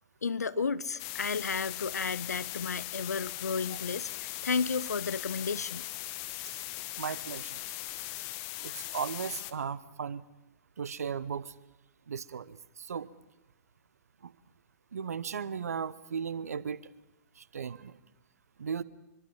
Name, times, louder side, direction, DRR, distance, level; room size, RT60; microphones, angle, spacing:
voice 1, 0.2-5.9, left 5 dB, 75° left, 17 dB, 0.8 m, -32 dB
sound 1, 1.0-9.5, left 16 dB, 35° left, 1.2 m, -39 dB
voice 2, 7.0-7.6 8.6-10.2 10.8-11.5 12.1-13.1 14.2-14.3 14.9-16.8 17.4-18.0 18.6-18.8, right 6 dB, 65° right, 18 dB, 1.0 m, -36 dB
25.5 x 24.0 x 5.6 m, 1.0 s
figure-of-eight pair, 110°, 9 cm